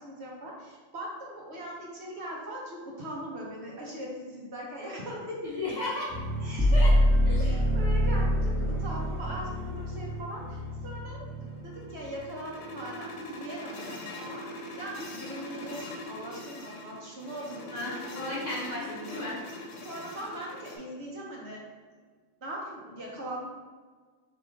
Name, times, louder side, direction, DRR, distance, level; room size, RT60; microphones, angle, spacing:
voice 1, 0.0-5.5 6.4-14.4 14.8-18.4 19.8-21.6 22.4-23.5, right 1 dB, 60° right, -3 dB, 1.1 m, -40 dB
voice 2, 5.4-6.1 6.7-6.9 7.2-7.4 17.7-19.4, left 2 dB, 40° left, -6 dB, 0.8 m, -34 dB
sound 1, 6.1-12.3, equal, 10° right, 0.7 m, -26 dB
sound 2, 11.3-20.8, left 1 dB, 75° left, 1.1 m, -42 dB
3.5 x 3.0 x 4.3 m, 1.5 s
omnidirectional pair, 1.3 m